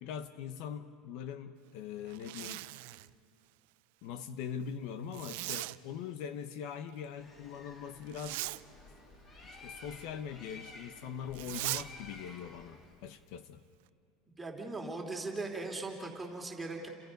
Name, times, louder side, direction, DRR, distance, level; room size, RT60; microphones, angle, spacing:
voice 1, 0.0-2.6 4.0-8.4 9.4-13.6, left 8 dB, 60° left, 11 dB, 1.0 m, -42 dB
Zipper (clothing), 2.1-3.1 5.1-5.8 8.1-8.6 11.3-11.9, right 20 dB, 75° right, 0.5 m, -39 dB
Bird, 7.0-13.0, left 2 dB, 25° left, 2.7 m, -53 dB
voice 2, 14.4-16.9, right 3 dB, 10° right, 0 dB, 3.0 m, -39 dB
29.5 x 27.5 x 5.4 m, 2.6 s
cardioid pair, 160°, 0 cm